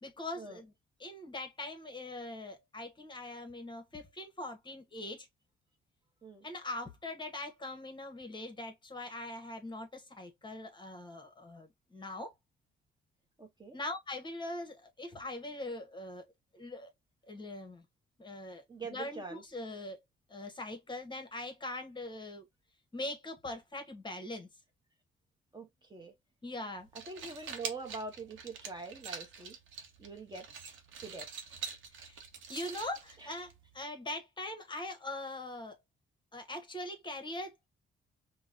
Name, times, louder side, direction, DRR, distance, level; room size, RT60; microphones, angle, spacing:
voice 1, 0.0-0.7 1.0-5.3 6.4-12.3 13.7-16.2 16.5-16.9 17.3-17.8 18.2-18.6 18.9-20.0 20.3-22.4 22.9-24.5 26.4-26.9 31.9-32.2 32.5-35.8 36.3-37.7, left 2 dB, 25° left, 1.0 m, -42 dB
voice 2, 13.4-13.8 18.7-19.4 25.5-26.1 27.1-29.6 30.0-30.5 31.0-31.3 33.2-33.3, right 3 dB, 20° right, 0.8 m, -44 dB
sound 1, 26.8-33.8, right 6 dB, 80° right, 0.8 m, -46 dB
3.8 x 2.1 x 2.5 m
cardioid pair, 90°, 20 cm